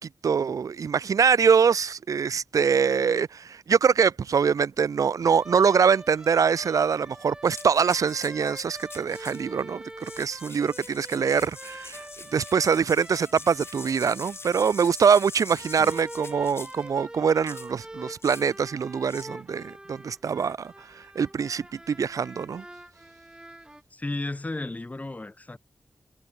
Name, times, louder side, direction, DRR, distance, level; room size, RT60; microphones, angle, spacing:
voice 1, 0.2-9.8 10.2-12.0 12.3-20.7 21.2-22.6, right 6 dB, 75° right, 0.5 m, -23 dB
sound 1, 5.2-23.8, right 1 dB, 15° right, 7.4 m, -44 dB
sound 2, 7.4-9.5 9.9-16.9 17.5-17.7 18.2-18.5 19.1-19.3, left 3 dB, 45° left, 2.1 m, -44 dB
voice 2, 23.9-25.6, left 2 dB, 25° left, 1.9 m, -33 dB
wide cardioid pair, 95°, 6 cm